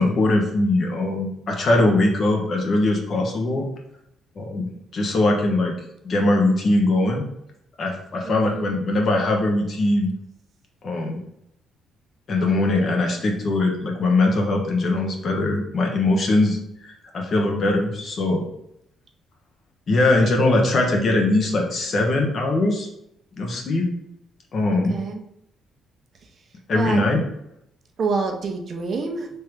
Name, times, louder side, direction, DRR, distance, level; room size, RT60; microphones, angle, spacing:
voice 1, 0.0-3.6 4.4-5.7 6.0-7.2 7.8-10.1 10.8-11.2 12.3-18.4 19.9-22.9 23.4-23.9 24.5-25.0 26.7-27.2, left 2 dB, 50° left, 1 dB, 1.0 m, -21 dB
voice 2, 8.2-8.7 24.9-25.2 26.7-27.0 28.0-29.3, right 4 dB, 55° right, 3 dB, 0.7 m, -27 dB
3.4 x 3.0 x 3.4 m, 0.78 s
cardioid pair, 85°, 0 cm